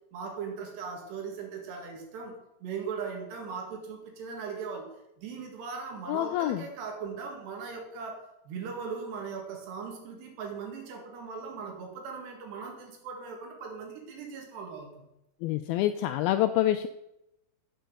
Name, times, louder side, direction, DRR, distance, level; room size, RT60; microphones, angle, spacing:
voice 1, 0.1-4.9 5.2-15.1, right 5 dB, 80° right, 2 dB, 4.1 m, -39 dB
voice 2, 6.1-6.6 15.4-16.9, left 13 dB, 85° left, 9 dB, 2.2 m, -26 dB
8.3 x 6.9 x 7.6 m, 0.85 s
omnidirectional pair, 4.8 m